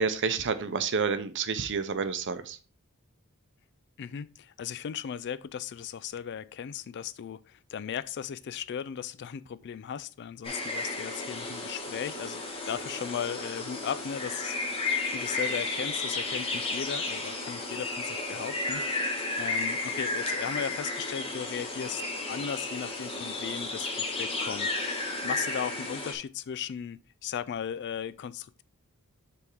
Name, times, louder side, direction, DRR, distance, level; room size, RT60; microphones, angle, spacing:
voice 1, 0.0-2.6, right 5 dB, 55° right, 0.7 m, -29 dB
voice 2, 4.0-22.0 22.3-28.6, left 8 dB, 50° left, 0.3 m, -37 dB
sound 1, 10.4-26.1, left 2 dB, 25° left, 1.3 m, -33 dB
6.8 x 3.6 x 4.7 m
head